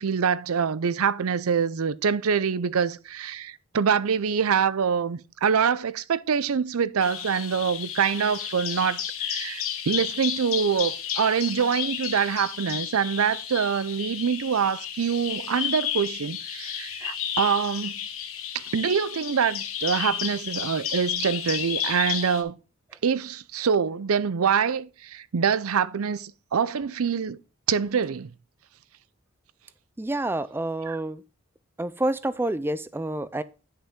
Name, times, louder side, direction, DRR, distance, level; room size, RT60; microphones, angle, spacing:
voice 1, 0.0-18.0 18.5-22.6 23.0-27.4 27.7-28.3 30.9-31.0, right 6 dB, 85° right, 0.5 m, -25 dB
Bird vocalization bird call bird song, 7.0-22.4, left 9 dB, 75° left, 1.2 m, -32 dB
voice 2, 30.0-31.2 31.8-33.4, right 1 dB, 10° right, 0.4 m, -28 dB
9.8 x 5.6 x 3.7 m
head